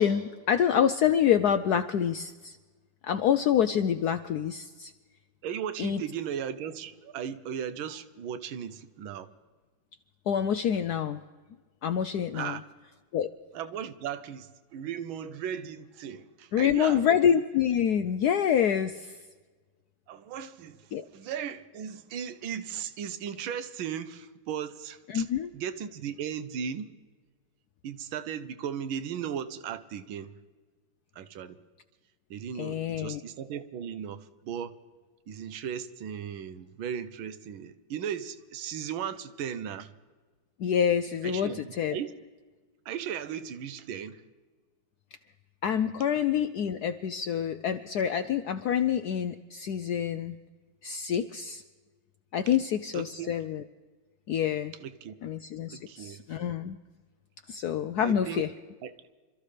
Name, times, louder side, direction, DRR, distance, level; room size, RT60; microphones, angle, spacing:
voice 1, 0.0-2.6 3.0-4.9 5.8-6.0 10.3-11.2 11.8-12.6 13.1-13.3 16.5-19.2 20.9-21.0 25.1-25.5 32.6-33.2 40.6-42.0 45.6-50.3 50.8-51.6 52.3-53.6 54.3-54.7 55.2-56.8 57.5-58.5, left 9 dB, 75° left, 0.9 m, -27 dB
voice 2, 5.4-9.3 12.3-12.6 13.5-17.1 20.1-25.3 25.5-26.9 27.8-30.3 31.1-31.6 32.3-34.8 35.3-39.9 41.2-42.1 42.8-44.2 52.9-53.3 54.8-55.1 55.7-56.2 58.0-58.5 58.8-58.9, right 8 dB, 80° right, 1.6 m, -37 dB
27.0 x 14.0 x 3.3 m
omnidirectional pair, 2.2 m